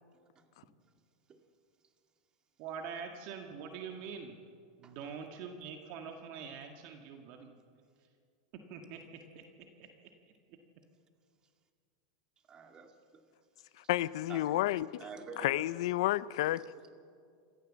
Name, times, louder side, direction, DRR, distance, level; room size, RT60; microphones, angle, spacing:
voice 1, 2.6-4.4 4.8-7.5 8.0-8.1 8.5-9.9 10.3-10.6, right 6 dB, 55° right, 1.8 m, -45 dB
voice 2, 12.5-13.2 14.3-14.6 15.0-15.6 16.6-16.7, right 5 dB, 25° right, 2.1 m, -48 dB
voice 3, 13.8-14.9 15.4-16.6, left 15 dB, 70° left, 0.6 m, -30 dB
27.0 x 14.0 x 7.5 m
supercardioid pair, 130°, 3 cm